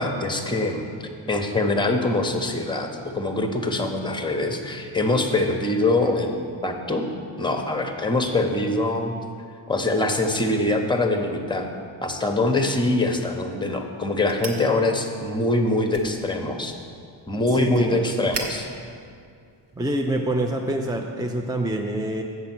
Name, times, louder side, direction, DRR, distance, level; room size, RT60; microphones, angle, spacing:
voice 1, 0.0-7.1 7.4-9.1 9.7-11.7 12.0-16.7 17.3-18.7, left 2 dB, 10° left, 4 dB, 0.8 m, -24 dB
sound 1, 12.9-20.1, right 3 dB, 55° right, 1.2 m, -41 dB
voice 2, 17.5-18.1 19.8-22.2, right 1 dB, 10° right, 2 dB, 0.4 m, -26 dB
8.0 x 6.8 x 6.0 m, 2.3 s
wide cardioid pair, 105°, 49 cm